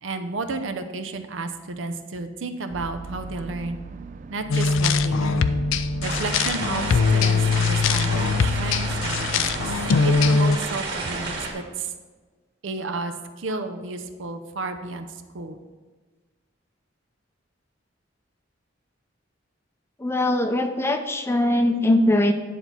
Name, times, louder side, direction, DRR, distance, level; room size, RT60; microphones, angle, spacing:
voice 1, 0.0-3.8 4.3-5.5 6.0-9.7 10.0-11.9 12.6-15.1 15.3-15.6, right 3 dB, 80° right, 7 dB, 0.7 m, -32 dB
sound 1, 2.7-10.2, right 4 dB, 40° right, 0.4 m, -37 dB
sound 2, 4.5-10.6, left 4 dB, 85° left, 0.4 m, -22 dB
sound 3, 6.0-11.5, right 3 dB, 60° right, 1.9 m, -31 dB
voice 2, 20.0-22.3, left 1 dB, 15° left, 6 dB, 0.5 m, -21 dB
10.0 x 4.1 x 6.0 m, 1.4 s
head